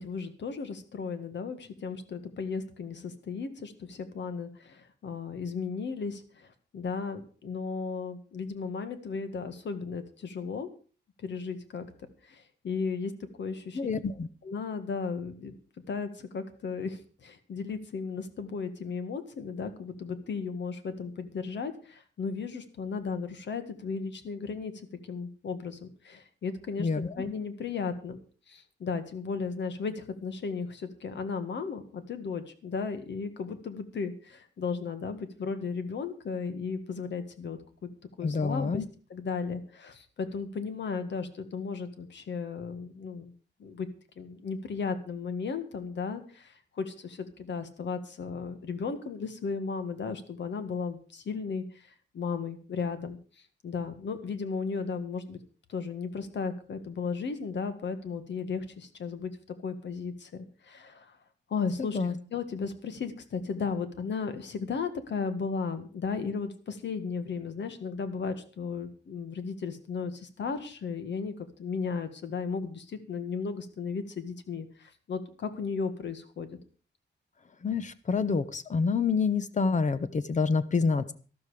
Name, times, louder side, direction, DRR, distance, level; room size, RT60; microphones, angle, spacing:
voice 1, 0.0-6.5 6.7-10.7 11.2-11.9 12.2-13.1 13.4-13.8 14.4-15.5 15.9-24.7 25.0-28.2 28.5-37.9 38.2-38.8 39.1-43.3 43.6-43.9 44.2-51.6 52.1-53.2 53.6-55.4 55.7-59.3 59.6-61.1 61.5-76.5, left 5 dB, 70° left, 10 dB, 1.8 m, -35 dB
voice 2, 13.7-14.3 26.8-27.1 38.2-38.9 61.9-62.1 77.6-81.1, left 4 dB, 40° left, 14 dB, 1.0 m, -27 dB
12.5 x 12.5 x 5.0 m, 0.38 s
wide cardioid pair, 160°, 19 cm